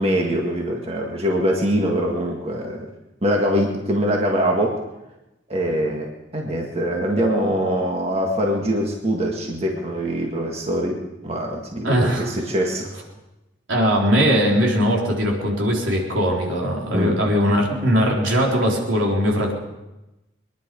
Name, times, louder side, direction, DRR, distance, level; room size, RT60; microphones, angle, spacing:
voice 1, 0.0-2.9 3.2-4.8 5.5-13.0 16.9-17.2, equal, 30° right, 0 dB, 1.8 m, -23 dB
voice 2, 11.8-12.3 13.7-19.5, equal, 85° right, -1 dB, 3.8 m, -20 dB
23.5 x 11.0 x 5.3 m, 0.98 s
head